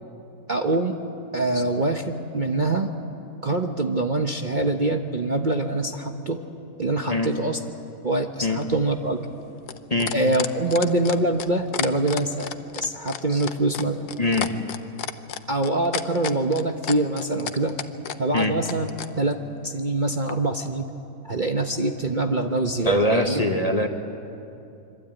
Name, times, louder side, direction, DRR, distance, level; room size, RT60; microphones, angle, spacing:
voice 1, 0.5-1.0 1.3-2.9 3.4-6.4 6.8-7.6 8.0-9.2 10.1-12.5 12.8-14.0 15.5-17.8 18.2-18.9 19.2-20.9 21.2-23.4, right 2 dB, 35° right, 4 dB, 1.1 m, -24 dB
sound 1, 8.6-19.1 20.3-20.4, left 9 dB, 75° left, 1.5 m, -31 dB
voice 2, 14.2-14.5 18.3-18.5 22.8-23.9, left 1 dB, 25° left, 4 dB, 1.3 m, -22 dB
25.5 x 24.0 x 9.1 m, 2.7 s
omnidirectional pair, 1.7 m